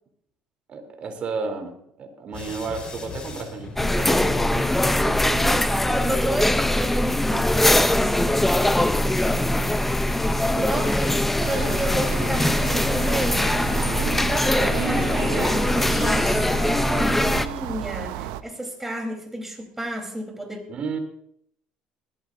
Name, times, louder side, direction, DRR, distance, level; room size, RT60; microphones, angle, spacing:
voice 1, 0.7-5.6 5.8-6.2 7.3-7.4 8.7-8.8 9.4-9.6 10.6-10.9 13.7-15.8 18.1-18.3 20.7-21.0, right 5 dB, 45° right, 4 dB, 3.3 m, -33 dB
sound 1, 2.3-17.7, left 3 dB, 35° left, 4.5 m, -40 dB
sound 2, 3.8-17.5, left 1 dB, 5° left, 0.7 m, -22 dB
voice 2, 5.2-9.6 10.5-13.5 14.6-20.7, right 1 dB, 10° right, 3 dB, 3.8 m, -32 dB
sound 3, 11.4-18.4, right 13 dB, 90° right, 0.7 m, -34 dB
19.5 x 14.0 x 2.7 m, 0.71 s
supercardioid pair, 100°, 3 cm